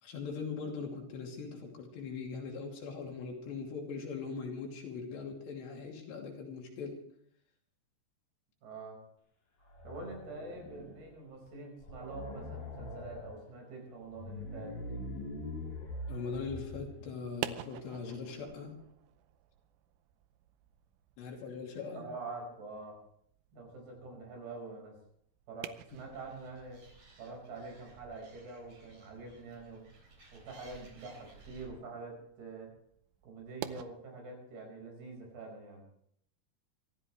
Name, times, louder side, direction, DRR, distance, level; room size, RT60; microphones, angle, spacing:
voice 1, 0.0-7.0 16.1-18.7 21.2-22.0, left 5 dB, 85° left, 0 dB, 5.0 m, -41 dB
voice 2, 8.6-9.0 9.8-14.8 21.9-23.0 23.5-24.9 25.5-26.8 27.2-29.8 30.3-32.7 33.2-35.8, right 3 dB, 65° right, 1 dB, 7.0 m, -45 dB
sound 1, 9.6-11.1 11.5-11.6 11.8-13.4 14.0-17.1, left 1 dB, 40° left, 5.0 m, -43 dB
sound 2, 17.2-33.9, right 13 dB, 90° right, 3.0 m, -50 dB
Animal, 25.9-31.7, right 4 dB, 40° right, 4.3 m, -58 dB
26.0 x 14.0 x 3.3 m, 0.68 s
omnidirectional pair, 4.9 m